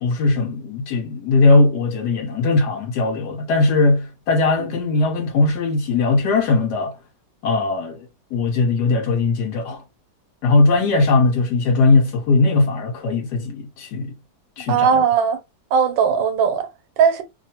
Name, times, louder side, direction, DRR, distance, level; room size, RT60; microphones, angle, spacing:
voice 1, 0.0-7.0 7.4-8.1 8.3-9.8 10.4-14.1 14.6-15.0, left 3 dB, 75° left, 1.1 m, -19 dB
voice 2, 14.7-15.4 15.7-16.7 17.0-17.2, right 6 dB, 85° right, 1.3 m, -18 dB
2.9 x 2.2 x 2.8 m
omnidirectional pair, 1.9 m